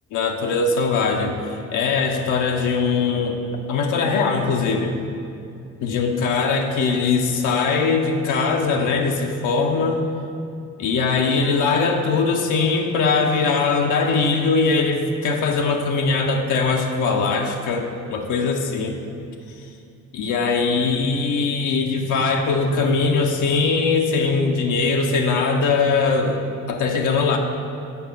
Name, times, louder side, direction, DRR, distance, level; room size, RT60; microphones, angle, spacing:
voice 1, 0.1-3.4 3.7-5.0 5.8-10.0 10.8-19.0 20.1-26.4 26.7-27.4, left 4 dB, 85° left, 2 dB, 0.7 m, -21 dB
6.9 x 4.8 x 5.3 m, 2.5 s
cardioid pair, 90°, 30 cm